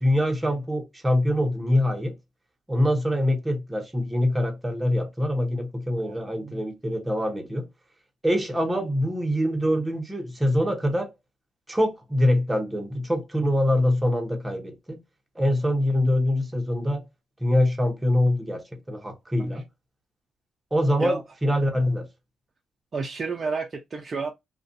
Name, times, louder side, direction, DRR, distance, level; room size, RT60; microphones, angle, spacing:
voice 1, 0.0-2.2 2.7-7.7 8.2-11.1 11.7-15.0 15.4-17.0 17.4-19.6 20.7-22.1, left 1 dB, 15° right, 0.8 m, -24 dB
voice 2, 6.0-6.6 19.4-19.6 21.0-21.2 22.9-24.3, right 4 dB, 40° right, 0.5 m, -31 dB
2.4 x 2.2 x 2.5 m
cardioid pair, 90°, 0 cm